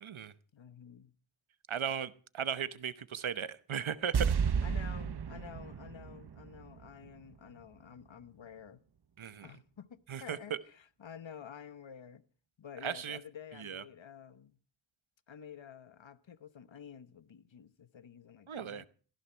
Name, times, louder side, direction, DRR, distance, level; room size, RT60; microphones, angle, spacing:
voice 1, 0.0-0.3 1.7-4.3 9.2-9.5 10.1-10.6 12.8-13.2 13.6-13.8 18.5-18.8, right 8 dB, 85° right, 1.0 m, -37 dB
voice 2, 0.5-1.1 4.6-8.8 9.4-12.2 12.6-14.6 15.3-18.9, left 8 dB, 70° left, 1.1 m, -50 dB
sound 1, 4.1-7.3 7.6-7.7, right 6 dB, 55° right, 0.8 m, -33 dB
18.0 x 14.5 x 4.5 m
wide cardioid pair, 55°, 47 cm